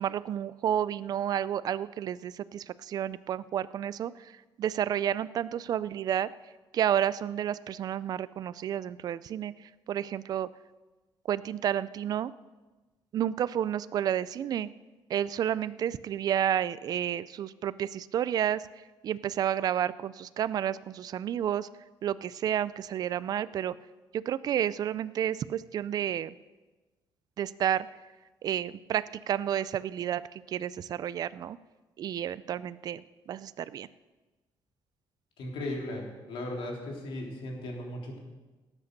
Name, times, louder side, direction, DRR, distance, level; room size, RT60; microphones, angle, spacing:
voice 1, 0.0-4.3 4.6-6.3 6.7-9.5 9.9-10.5 11.3-12.3 13.1-14.7 15.1-18.6 19.0-21.7 22.0-23.7 24.1-26.3 27.4-27.9 28.4-31.6 32.0-33.0 33.3-33.9, right 10 dB, 45° right, 17 dB, 0.4 m, -30 dB
voice 2, 35.4-38.2, left 1 dB, 75° left, 0 dB, 3.4 m, -37 dB
17.0 x 8.3 x 6.7 m, 1.2 s
cardioid pair, 155°, 9 cm